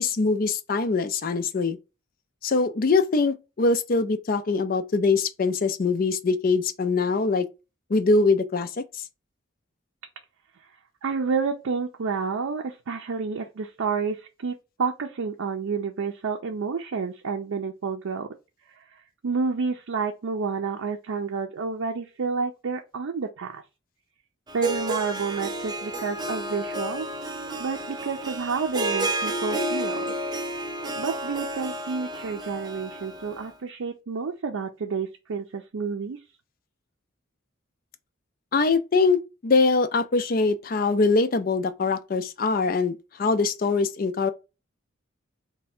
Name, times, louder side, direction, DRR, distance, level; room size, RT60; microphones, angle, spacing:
voice 1, 0.0-1.8 2.4-7.5 7.9-9.0 38.5-44.3, left 3 dB, 45° left, 0.4 m, -23 dB
voice 2, 11.0-18.3 18.7-23.6 24.5-27.1 27.6-30.1 31.0-36.2, right 5 dB, 85° right, 0.5 m, -30 dB
Harp, 24.5-33.5, right 1 dB, 20° right, 0.5 m, -31 dB
3.3 x 2.2 x 4.3 m
head